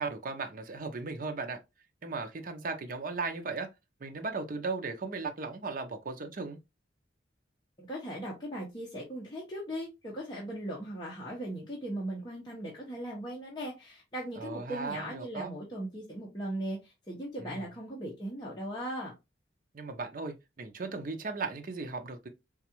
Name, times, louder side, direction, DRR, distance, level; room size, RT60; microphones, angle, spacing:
voice 1, 0.0-1.6 2.0-3.7 4.0-6.6 14.4-15.5 17.4-17.7 19.7-22.3, right 4 dB, 50° right, 0.6 m, -37 dB
voice 2, 7.8-19.1, right 1 dB, 25° left, 0.9 m, -38 dB
4.0 x 2.4 x 2.9 m
head